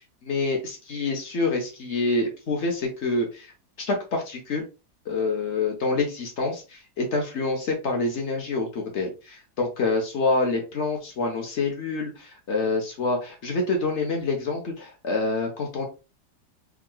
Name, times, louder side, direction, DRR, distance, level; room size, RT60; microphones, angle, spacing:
voice 1, 0.2-3.5 3.8-4.7 5.1-15.8, left 3 dB, 50° left, 1 dB, 1.0 m, -27 dB
3.6 x 2.9 x 2.2 m, 0.30 s
omnidirectional pair, 1.9 m